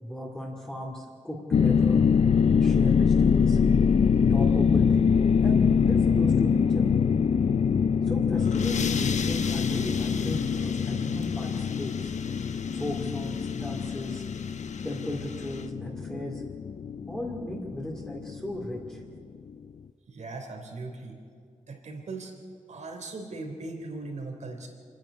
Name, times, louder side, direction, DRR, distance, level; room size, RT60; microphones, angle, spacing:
voice 1, 0.0-2.0 2.6-3.6 4.3-5.1 5.4-6.9 8.0-12.1 12.7-14.2 14.8-16.4 17.1-19.0, equal, 5° left, -2 dB, 2.3 m, -36 dB
sound 1, 1.5-18.7, left 6 dB, 55° left, 0.5 m, -24 dB
sound 2, 8.2-15.7, left 6 dB, 75° left, 1.0 m, -40 dB
voice 2, 20.1-21.2 21.7-22.3 22.7-24.7, right 3 dB, 70° right, 3 dB, 3.5 m, -39 dB
27.0 x 10.5 x 9.8 m, 2.2 s
wide cardioid pair, 120°, 12 cm